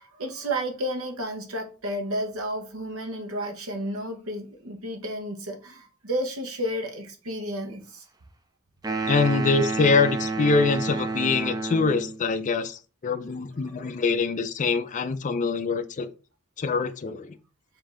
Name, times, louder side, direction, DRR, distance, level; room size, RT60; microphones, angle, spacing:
voice 1, 0.0-8.0 13.6-13.7, equal, 80° right, 1.0 m, -32 dB
sound 1, 8.8-12.2, right 4 dB, 20° right, 0.5 m, -29 dB
voice 2, 9.1-16.1 16.6-17.3, left 4 dB, 35° left, 0.4 m, -24 dB
5.0 x 2.7 x 3.7 m
head